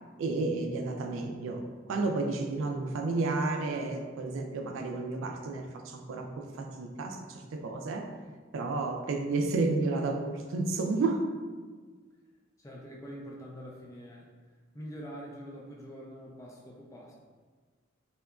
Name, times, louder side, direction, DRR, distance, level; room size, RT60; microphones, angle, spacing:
voice 1, 0.2-8.1 8.5-11.3, right 3 dB, 75° right, 3 dB, 0.3 m, -31 dB
voice 2, 12.6-14.3 14.7-17.1, equal, 15° left, -2 dB, 0.3 m, -45 dB
2.8 x 2.2 x 2.3 m, 1.4 s
head